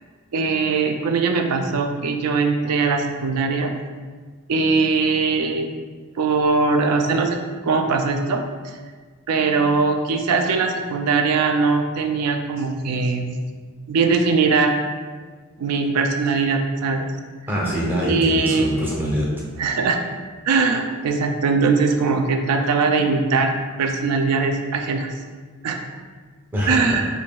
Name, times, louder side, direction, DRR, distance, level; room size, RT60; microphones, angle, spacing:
voice 1, 0.3-3.7 4.5-5.7 6.2-7.4 7.6-8.7 9.3-13.4 13.9-14.7 15.6-17.1 18.1-18.7 19.6-20.0 20.4-23.5 23.8-25.1 25.6-25.8 26.7-27.1, right 4 dB, 90° right, 5 dB, 0.4 m, -21 dB
voice 2, 17.5-19.3 26.5-27.0, equal, 10° right, -5 dB, 0.6 m, -24 dB
5.0 x 2.7 x 2.3 m, 1.5 s
head